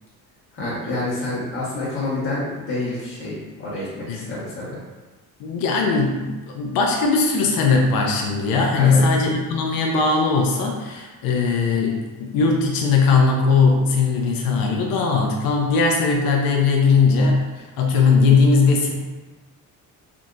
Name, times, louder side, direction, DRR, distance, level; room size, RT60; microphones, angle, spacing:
voice 1, 0.5-4.8 8.7-9.0, left 2 dB, 35° left, -9 dB, 1.3 m, -28 dB
voice 2, 5.4-18.9, left 4 dB, 75° left, 0 dB, 0.6 m, -19 dB
3.5 x 2.7 x 2.5 m, 1.2 s
cardioid pair, 135°, 35 cm